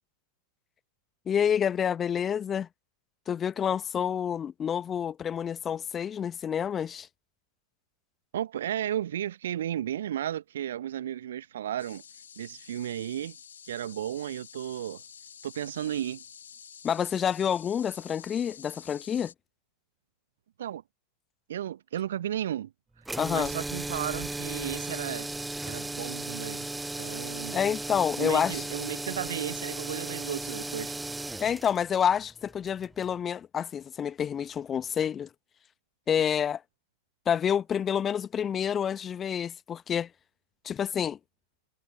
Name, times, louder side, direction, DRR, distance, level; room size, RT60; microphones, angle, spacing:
voice 1, 1.3-2.7 3.3-7.1 16.8-19.3 23.2-23.5 27.5-28.6 31.4-35.3 36.1-36.6 37.3-40.1 40.6-41.2, left 8 dB, 25° left, 1.2 m, -28 dB
voice 2, 8.3-12.0 12.4-13.4 13.7-15.0 15.4-16.2 20.6-20.8 21.5-22.7 23.3-25.3 25.6-26.7 27.0-27.6 28.2-31.0, right 11 dB, 60° right, 1.3 m, -34 dB
sound 1, 11.8-19.3, left 7 dB, 70° left, 3.0 m, -49 dB
sound 2, 23.0-33.1, right 2 dB, 5° right, 0.4 m, -36 dB
figure-of-eight pair, 90°, 0 cm